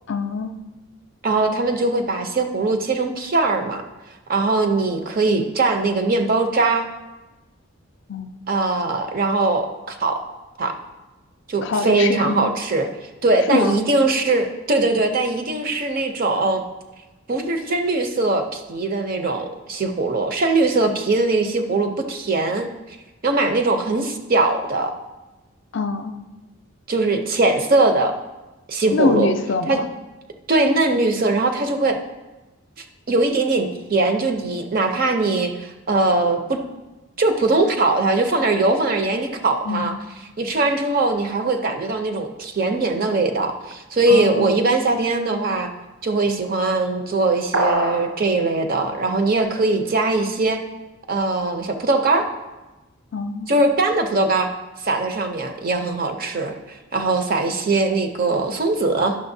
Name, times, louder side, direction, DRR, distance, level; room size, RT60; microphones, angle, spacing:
voice 1, 0.1-0.5 8.1-8.3 11.6-12.5 13.5-13.8 25.7-26.1 28.9-29.9 39.6-40.0 44.1-44.6 53.1-53.5, left 4 dB, 55° left, 8 dB, 0.5 m, -24 dB
voice 2, 1.2-3.8 4.3-6.9 8.5-10.2 10.6-10.7 11.5-12.9 13.2-16.6 17.3-22.7 23.2-25.0 26.9-28.2 28.7-29.3 29.7-29.8 30.5-32.0 33.1-36.6 37.2-39.9 40.4-45.7 46.0-50.6 51.1-52.3 53.5-54.5 54.8-59.2, right 3 dB, 40° right, 5 dB, 0.6 m, -21 dB
sound 1, 47.5-48.1, right 2 dB, 75° right, 1.2 m, -21 dB
10.5 x 6.4 x 2.7 m, 1.1 s
head